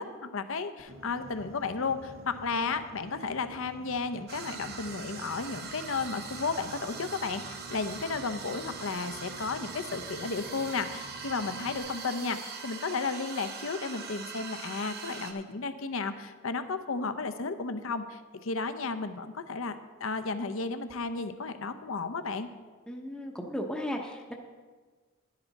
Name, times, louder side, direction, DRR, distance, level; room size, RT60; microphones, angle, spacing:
voice 1, 0.0-19.7 20.0-22.5, left 4 dB, 65° left, 10 dB, 0.7 m, -33 dB
Boat Water vehicle, 0.8-11.8, right 1 dB, 70° right, 1.1 m, -49 dB
sound 1, 4.3-15.3, right 5 dB, 45° right, 1.0 m, -42 dB
voice 2, 22.9-24.3, equal, 5° left, 0 dB, 0.8 m, -35 dB
11.5 x 10.5 x 4.1 m, 1.4 s
head